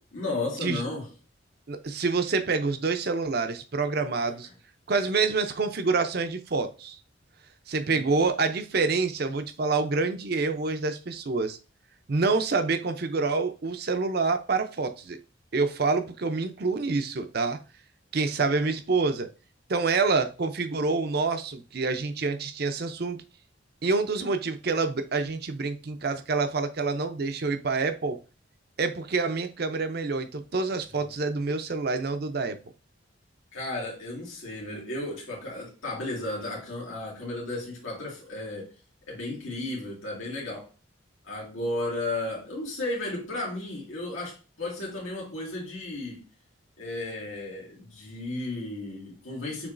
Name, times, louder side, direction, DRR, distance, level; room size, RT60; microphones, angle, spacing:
voice 1, 0.1-1.1 7.9-8.1 33.5-38.7 39.1-40.7 41.2-46.3 46.8-49.7, left 2 dB, 85° left, 2.0 m, -34 dB
voice 2, 1.7-4.5 4.9-7.0 7.7-11.6 12.1-15.2 15.5-17.6 18.1-19.3 19.7-23.2 23.8-28.2 28.8-32.6, right 4 dB, 50° right, 0.5 m, -27 dB
6.8 x 3.0 x 2.5 m
head